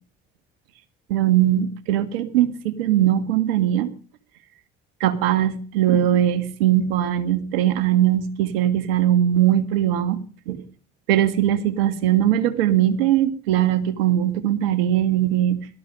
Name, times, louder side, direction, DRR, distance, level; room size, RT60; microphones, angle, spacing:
voice 1, 1.1-3.9 5.0-10.2 10.5-10.6 11.1-15.7, right 11 dB, 75° right, 13 dB, 1.6 m, -20 dB
18.0 x 13.0 x 5.4 m, 0.39 s
hypercardioid pair, 50°, 29 cm